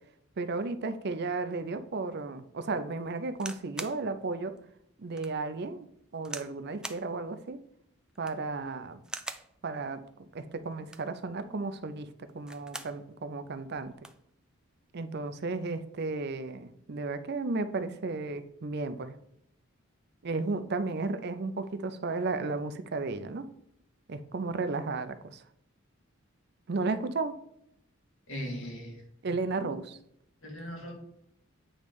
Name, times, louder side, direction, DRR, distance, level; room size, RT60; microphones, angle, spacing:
voice 1, 0.4-4.6 5.0-5.9 6.1-7.6 8.2-9.0 9.6-10.0 10.3-13.9 14.9-19.2 20.2-23.5 24.1-25.4 26.7-27.4 29.2-30.0, right 3 dB, 55° right, 11 dB, 0.5 m, -34 dB
sound 1, 3.3-4.0 4.6-4.7 5.2-5.3 6.2-6.5 6.8-7.1 8.1-8.5 9.0-9.5 10.7-11.2 12.3-13.0 13.4-13.5 13.7-14.2 15.1-15.3, right 2 dB, 5° right, 0.4 m, -42 dB
voice 2, 28.3-29.0 29.6-29.8 30.4-30.9, equal, 85° left, 0 dB, 2.1 m, -39 dB
8.7 x 3.2 x 5.2 m, 0.74 s
head